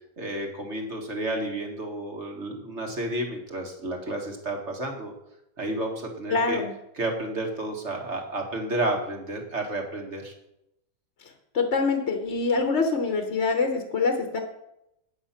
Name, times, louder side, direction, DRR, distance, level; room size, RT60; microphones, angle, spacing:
voice 1, 0.2-5.1 5.6-6.6 6.9-10.3, right 1 dB, 40° right, 2 dB, 1.9 m, -31 dB
voice 2, 6.3-6.7 11.5-14.4, left 4 dB, 45° left, 5 dB, 1.2 m, -25 dB
9.2 x 7.9 x 5.8 m, 0.83 s
omnidirectional pair, 1.9 m